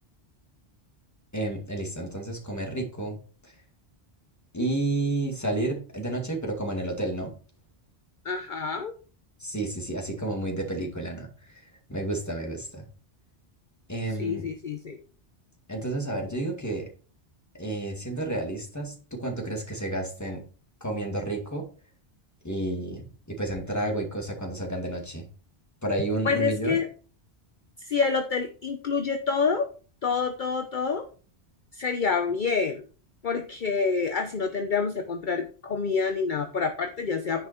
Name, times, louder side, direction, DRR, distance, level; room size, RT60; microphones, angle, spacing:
voice 1, 1.3-3.2 4.5-7.3 9.4-11.6 11.9-12.8 13.9-14.5 15.7-16.9 17.5-20.4 20.8-21.7 22.4-25.2 25.8-26.8, right 2 dB, 15° left, 1 dB, 2.1 m, -31 dB
voice 2, 8.2-8.9 14.2-15.0 26.2-26.9 27.8-29.7 30.0-31.1 31.7-32.8 33.2-37.5, left 5 dB, 50° left, 6 dB, 0.9 m, -27 dB
9.9 x 5.4 x 4.4 m, 0.39 s
omnidirectional pair, 1.1 m